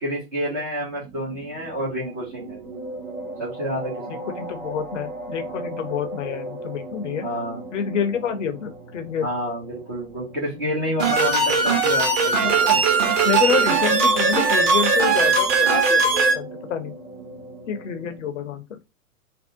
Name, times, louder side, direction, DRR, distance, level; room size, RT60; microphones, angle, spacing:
voice 1, 0.0-2.6 3.4-4.4 7.2-7.6 9.2-12.8, equal, 15° right, 0.3 m, -29 dB
sound 1, 0.9-18.2, right 1 dB, 60° right, 1.1 m, -37 dB
voice 2, 4.1-7.3 7.7-9.3 12.4-12.8 13.2-16.9 17.7-18.8, left 7 dB, 55° left, 0.6 m, -28 dB
sound 2, 11.0-16.3, right 4 dB, 35° right, 0.7 m, -19 dB
2.6 x 2.0 x 2.5 m
figure-of-eight pair, 100°, 44 cm